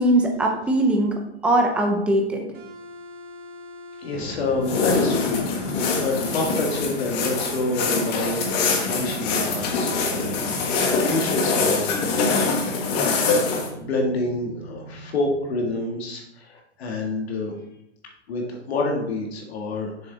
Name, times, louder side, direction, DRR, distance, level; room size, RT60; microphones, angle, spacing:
voice 1, 0.0-2.5, right 1 dB, 5° right, 1 dB, 0.5 m, -21 dB
sound 1, 2.5-8.3, left 2 dB, 60° right, 1.8 m, -42 dB
voice 2, 4.0-12.5 13.6-17.5 18.3-20.1, left 2 dB, 60° left, 0 dB, 1.9 m, -28 dB
sound 2, 4.1-15.8, right 3 dB, 20° right, 0.9 m, -40 dB
sound 3, 4.6-13.7, left 4 dB, 35° left, 1.5 m, -24 dB
6.9 x 6.4 x 4.0 m, 0.82 s
hypercardioid pair, 150°, 35 cm